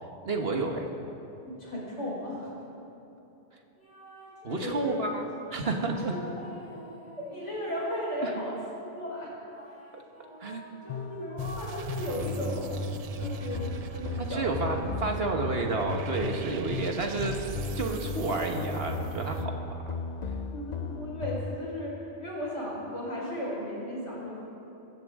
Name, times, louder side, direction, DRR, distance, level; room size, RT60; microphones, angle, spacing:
voice 1, 0.2-0.9 4.4-5.2 5.5-6.1 8.2-8.4 9.9-10.0 10.4-10.6 14.2-17.4 17.8-19.8, right 3 dB, 55° right, 2 dB, 1.5 m, -30 dB
voice 2, 1.4-2.5 4.6-5.0 6.1-6.2 7.3-8.6 9.0-9.3 10.8-12.9 13.2-13.7 13.9-14.7 20.5-24.4, left 1 dB, 80° left, -5 dB, 5.1 m, -35 dB
sound 1, 3.8-5.2 5.7-8.7 9.5-12.4 12.9-16.5, equal, 10° left, 4.0 m, -48 dB
sound 2, 10.9-21.5, left 4 dB, 50° left, 0.6 m, -36 dB
sound 3, 11.4-19.5, right 9 dB, 85° right, 0.3 m, -39 dB
24.5 x 14.0 x 3.7 m, 3.0 s
omnidirectional pair, 1.2 m